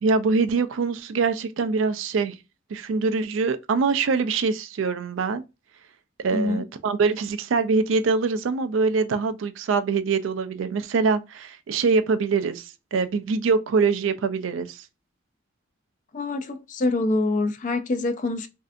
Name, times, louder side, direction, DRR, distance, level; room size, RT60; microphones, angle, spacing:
voice 1, 0.0-2.4 2.7-5.4 6.2-14.8, right 4 dB, 75° right, 0.4 m, -24 dB
voice 2, 6.3-6.7 16.1-18.5, left 2 dB, 40° left, 0.4 m, -25 dB
3.2 x 2.7 x 2.4 m
head